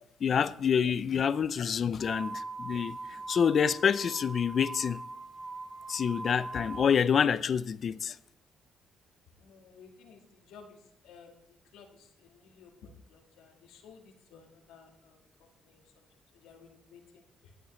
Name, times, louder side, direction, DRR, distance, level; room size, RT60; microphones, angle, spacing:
voice 1, 0.2-5.0 5.9-8.2, left 7 dB, 55° left, 0.5 m, -27 dB
sound 1, 2.0-6.9, right 3 dB, 30° right, 1.2 m, -41 dB
voice 2, 9.4-16.1 16.3-17.5, left 6 dB, 90° left, 1.9 m, -55 dB
20.0 x 8.6 x 3.2 m
cardioid pair, 90°, 0 cm